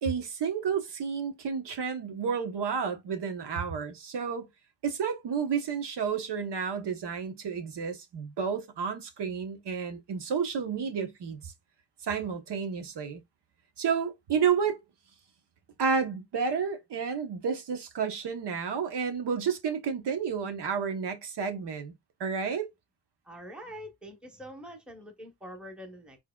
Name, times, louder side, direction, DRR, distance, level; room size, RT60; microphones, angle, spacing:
voice 1, 0.0-4.5 4.8-11.5 12.0-13.2 13.8-14.8 15.8-21.9 22.2-22.7, right 6 dB, 70° right, 1.2 m, -31 dB
voice 2, 23.3-26.2, equal, ahead, 1.1 m, -45 dB
4.6 x 4.4 x 2.4 m
wide cardioid pair, 120°, 43 cm